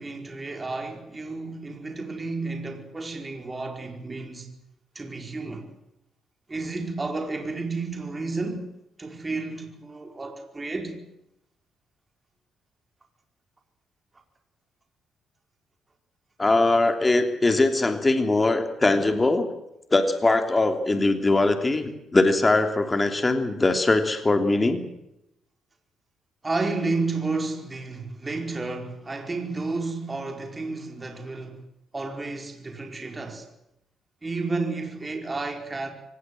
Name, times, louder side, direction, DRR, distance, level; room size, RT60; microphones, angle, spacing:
voice 1, 0.0-4.5 4.9-5.7 6.5-8.7 9.0-11.0 26.4-31.6 31.9-33.5 34.2-35.9, right 3 dB, 25° right, 4.7 m, -31 dB
voice 2, 16.4-19.5 19.9-24.9, left 2 dB, 20° left, 3.1 m, -21 dB
24.5 x 19.5 x 7.8 m
cardioid pair, 90°, 0 cm